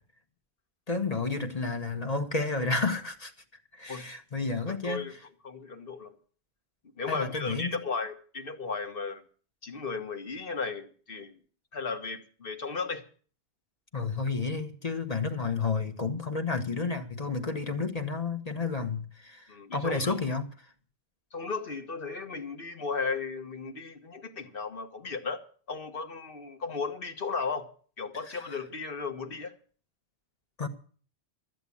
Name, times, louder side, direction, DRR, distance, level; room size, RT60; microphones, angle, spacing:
voice 1, 0.9-3.3 3.7-5.1 7.1-7.8 13.9-20.5 28.3-28.4 30.6-30.7, left 4 dB, 35° left, 1.3 m, -31 dB
voice 2, 4.7-5.1 5.4-6.1 7.0-9.2 9.6-11.4 11.7-13.0 19.5-20.2 21.3-25.4 25.7-27.7 28.0-29.5, left 4 dB, 60° left, 1.6 m, -35 dB
13.0 x 8.0 x 8.5 m
omnidirectional pair, 1.1 m